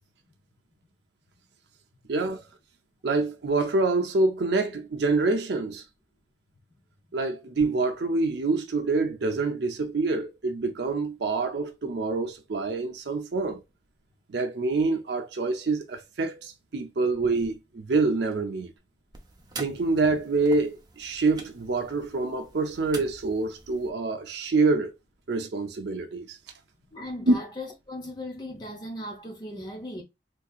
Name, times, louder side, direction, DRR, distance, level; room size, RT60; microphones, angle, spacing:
voice 1, 2.1-2.4 3.0-5.8 7.1-13.6 14.3-18.7 19.6-24.9 25.3-26.4 27.3-27.4, right 3 dB, 65° right, 0.5 m, -26 dB
sound 1, 19.1-23.9, right 3 dB, 25° right, 0.6 m, -45 dB
voice 2, 26.9-30.0, left 1 dB, 25° left, 0.7 m, -37 dB
3.7 x 2.8 x 2.4 m
head